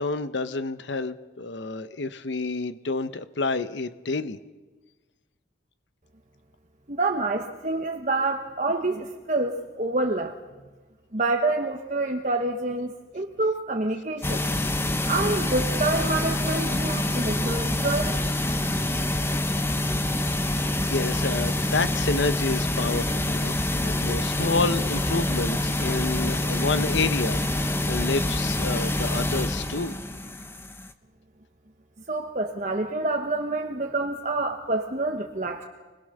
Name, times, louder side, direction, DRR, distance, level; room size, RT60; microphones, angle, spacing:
voice 1, 0.0-4.4 20.6-29.9, left 3 dB, 75° left, 12 dB, 0.9 m, -29 dB
voice 2, 6.9-10.3 11.1-14.5 15.1-18.2 32.1-35.6, right 2 dB, 40° right, 3 dB, 1.2 m, -27 dB
sound 1, 14.2-30.9, left 1 dB, 10° left, 0.9 m, -26 dB
25.5 x 21.0 x 6.7 m, 1.2 s
head